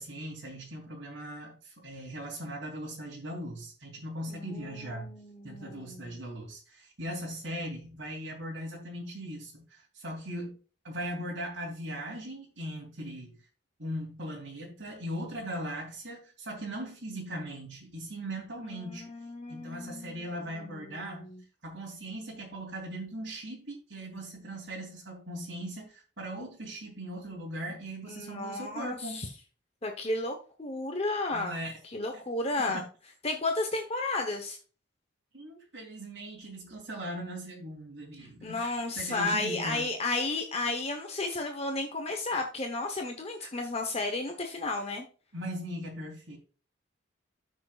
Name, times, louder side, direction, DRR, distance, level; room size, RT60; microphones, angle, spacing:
voice 1, 0.0-5.1 5.4-10.6 10.8-13.4 13.8-19.0 19.5-21.3 21.6-29.2 31.3-31.7 32.1-32.2 35.3-39.9 43.4-43.5 45.3-46.4, right 1 dB, 65° right, 3.2 m, -39 dB
voice 2, 4.3-6.2 18.6-21.4 28.0-29.3 29.8-31.6 31.9-32.8 33.2-34.6 38.2-45.0, left 2 dB, 30° left, 1.0 m, -33 dB
14.0 x 6.3 x 2.4 m
head